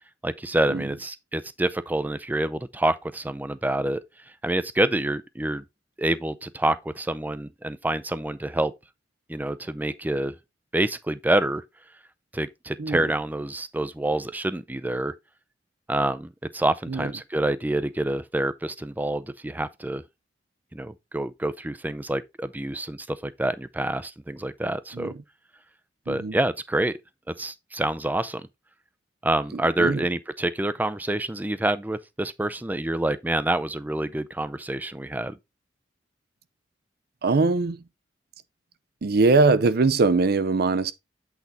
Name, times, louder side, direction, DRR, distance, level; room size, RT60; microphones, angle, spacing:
voice 1, 0.2-4.0 4.4-5.6 6.0-8.7 9.3-10.3 10.7-11.6 12.3-15.1 15.9-20.0 20.7-25.1 26.1-27.0 27.3-28.5 29.2-35.4, right 1 dB, 10° right, 0.4 m, -27 dB
voice 2, 26.1-26.4 29.5-30.0 37.2-37.8 39.0-40.9, right 3 dB, 60° right, 0.6 m, -22 dB
8.3 x 4.0 x 4.1 m
head